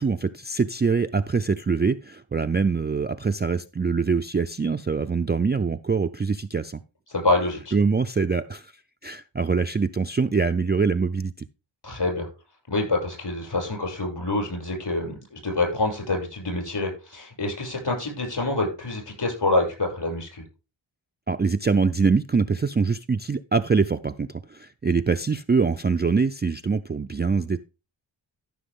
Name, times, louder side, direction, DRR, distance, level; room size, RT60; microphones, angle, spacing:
voice 1, 0.0-6.8 7.7-8.7 9.0-11.3 21.3-27.6, right 5 dB, 25° right, 0.4 m, -24 dB
voice 2, 7.1-7.7 11.8-12.3 12.7-20.4, left 2 dB, 55° left, 6.5 m, -26 dB
14.0 x 6.1 x 3.6 m
wide cardioid pair, 75°, 49 cm